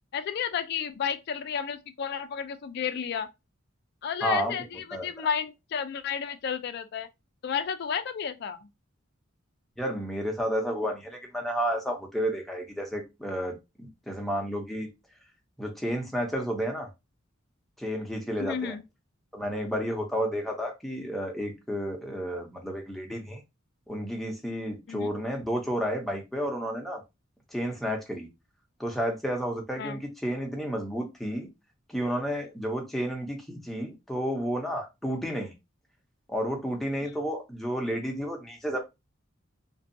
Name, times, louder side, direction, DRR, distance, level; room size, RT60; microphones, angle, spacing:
voice 1, 0.1-3.3 4.0-7.1 7.4-8.7 18.4-18.8 24.9-25.1 29.8-30.0 33.0-33.1 37.0-37.1, left 7 dB, 50° left, 0.3 m, -32 dB
voice 2, 4.2-4.6 4.9-5.1 9.8-14.9 15.6-16.9 17.8-18.8 19.3-23.4 23.9-27.0 27.5-28.3 28.8-31.5 31.9-35.5 36.3-38.8, equal, ahead, 0.5 m, -31 dB
2.6 x 2.3 x 2.5 m
head